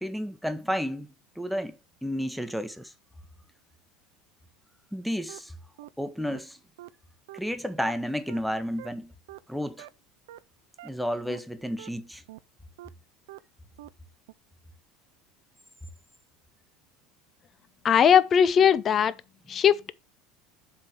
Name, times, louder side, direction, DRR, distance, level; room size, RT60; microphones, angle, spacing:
voice 1, 0.0-1.1 1.4-2.9 4.9-5.5 6.0-6.6 7.3-9.1 9.5-9.9 10.8-12.2, equal, ahead, 1.1 m, -31 dB
sound 1, 5.3-5.4 5.8-5.9 6.3-6.4 6.8-6.9 7.3-7.4 7.8-7.9 8.3-8.4 8.8-8.9 9.3-9.4 9.8-9.9 10.3-10.4 10.8-10.9 11.3-11.4 11.8-11.9 12.3-12.4 12.8-12.9 13.3-13.4 13.8-13.9 14.3-14.4, right 16 dB, 80° right, 0.5 m, -44 dB
voice 2, 17.8-19.1 19.5-19.9, left 8 dB, 35° left, 0.6 m, -19 dB
7.5 x 3.7 x 5.9 m
hypercardioid pair, 95°, 0 cm